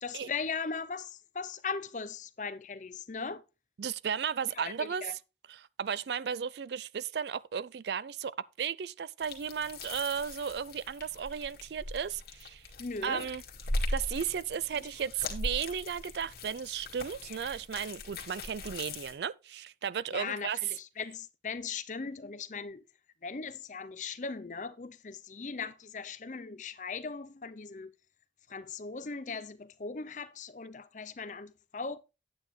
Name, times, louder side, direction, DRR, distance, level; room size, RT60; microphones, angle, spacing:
voice 1, 0.0-3.4 4.5-5.1 12.8-13.3 14.7-14.9 17.3-17.4 20.1-22.8 23.2-27.9 28.5-32.0, left 5 dB, 45° left, 0.6 m, -39 dB
voice 2, 3.8-5.0 5.5-12.7 13.0-13.4 13.9-20.6, right 7 dB, 70° right, 0.4 m, -35 dB
sound 1, 9.2-19.1, left 2 dB, 60° left, 1.8 m, -39 dB
9.2 x 8.8 x 3.2 m
head